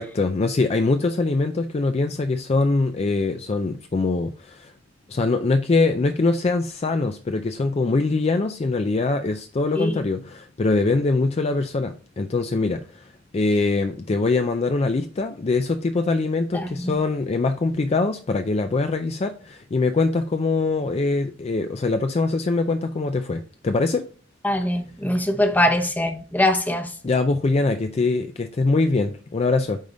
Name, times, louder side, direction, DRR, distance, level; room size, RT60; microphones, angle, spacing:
voice 1, 0.0-4.7 5.1-24.1 27.0-29.8, left 3 dB, 35° left, 0.4 m, -23 dB
voice 2, 16.5-17.0 24.4-26.9, left 1 dB, 10° left, 0.8 m, -22 dB
9.0 x 3.5 x 3.8 m
head